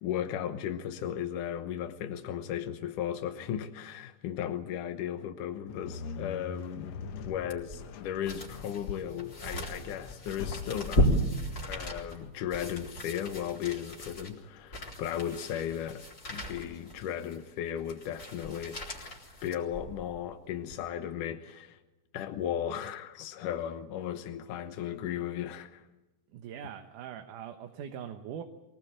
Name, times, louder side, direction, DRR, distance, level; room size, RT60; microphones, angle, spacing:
voice 1, 0.0-6.9 7.3-11.1 11.7-19.1 19.4-21.8 22.1-25.8, left 10 dB, 80° left, 2.7 m, -36 dB
sound 1, 5.7-16.8, left 6 dB, 65° left, 2.0 m, -45 dB
sound 2, 7.5-20.2 20.6-20.7, equal, 30° left, 4.4 m, -35 dB
voice 2, 26.3-28.4, right 9 dB, 80° right, 2.8 m, -42 dB
23.5 x 20.0 x 8.9 m
omnidirectional pair, 3.6 m